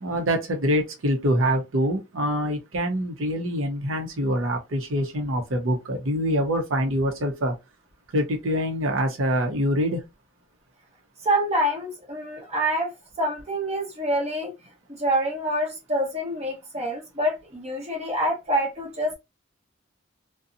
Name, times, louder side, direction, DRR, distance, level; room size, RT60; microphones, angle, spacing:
voice 1, 0.0-7.5 8.1-10.0, equal, 85° right, 0.8 m, -25 dB
voice 2, 11.2-12.9 13.2-14.5 14.9-19.1, right 1 dB, 35° right, 1.1 m, -26 dB
2.7 x 2.2 x 2.5 m
head